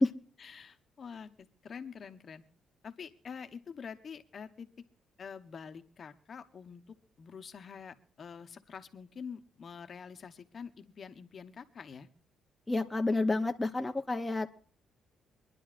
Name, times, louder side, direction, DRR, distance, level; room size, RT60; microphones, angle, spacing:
voice 1, 0.4-2.4 2.8-4.7 5.2-12.1, left 6 dB, 50° left, 8 dB, 0.9 m, -46 dB
voice 2, 12.7-14.5, left 2 dB, 15° left, 4 dB, 0.7 m, -29 dB
25.0 x 10.5 x 2.5 m, 0.43 s
cardioid pair, 90°, 0 cm